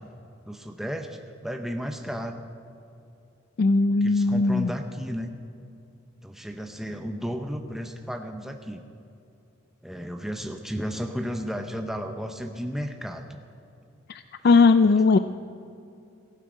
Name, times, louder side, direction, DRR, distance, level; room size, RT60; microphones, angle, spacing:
voice 1, 0.5-2.4 3.9-5.3 6.2-8.8 9.8-13.3 14.5-14.7, equal, ahead, 5 dB, 0.7 m, -33 dB
voice 2, 3.6-4.7 14.1-15.2, left 4 dB, 45° left, 10 dB, 0.3 m, -19 dB
17.5 x 15.0 x 5.0 m, 2.7 s
head